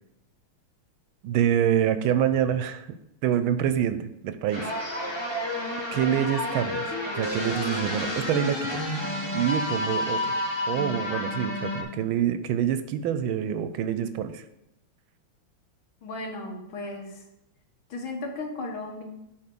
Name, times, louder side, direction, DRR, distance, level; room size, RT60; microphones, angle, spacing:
voice 1, 1.2-2.9 3.2-4.7 5.9-6.9 7.2-8.8 9.3-10.4 10.7-14.4, right 9 dB, 80° right, 11 dB, 1.3 m, -26 dB
sound 1, 4.5-11.8, left 1 dB, 15° left, 1.4 m, -30 dB
voice 2, 16.0-17.2 17.9-19.0, left 2 dB, 70° left, 2 dB, 2.1 m, -35 dB
8.7 x 3.7 x 6.7 m, 0.84 s
omnidirectional pair, 2.3 m